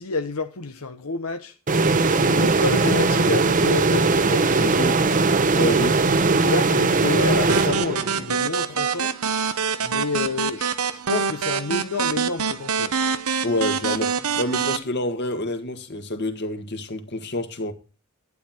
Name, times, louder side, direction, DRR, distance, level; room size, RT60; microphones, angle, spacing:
voice 1, 0.0-1.5 2.2-5.0 6.4-9.1 9.8-10.7 11.1-12.9, left 3 dB, 80° left, 1.0 m, -28 dB
sound 1, 1.7-8.3, right 3 dB, 35° right, 0.8 m, -20 dB
voice 2, 5.5-6.0 13.4-17.7, left 1 dB, 50° left, 1.9 m, -27 dB
sound 2, 7.5-14.8, right 6 dB, 90° right, 0.9 m, -25 dB
12.0 x 9.6 x 4.4 m
head